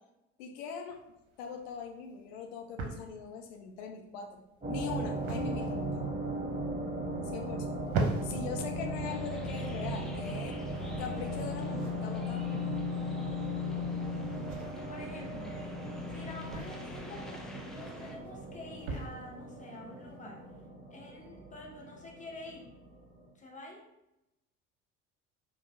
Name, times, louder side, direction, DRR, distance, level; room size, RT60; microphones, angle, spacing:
voice 1, 0.4-1.0 1.4-6.1 7.2-7.9 8.2-12.5, left 6 dB, 60° left, 3 dB, 0.5 m, -41 dB
sound 1, 0.9-20.7, right 3 dB, 60° right, 0.7 m, -43 dB
sound 2, 4.6-23.3, equal, 15° right, 1.0 m, -37 dB
sound 3, 9.0-18.1, equal, ahead, 0.4 m, -49 dB
voice 2, 14.6-15.7 16.1-20.5 20.9-22.7 23.3-23.8, left 2 dB, 20° left, -1 dB, 0.9 m, -48 dB
5.1 x 2.0 x 2.7 m, 0.91 s
figure-of-eight pair, 65°, 37 cm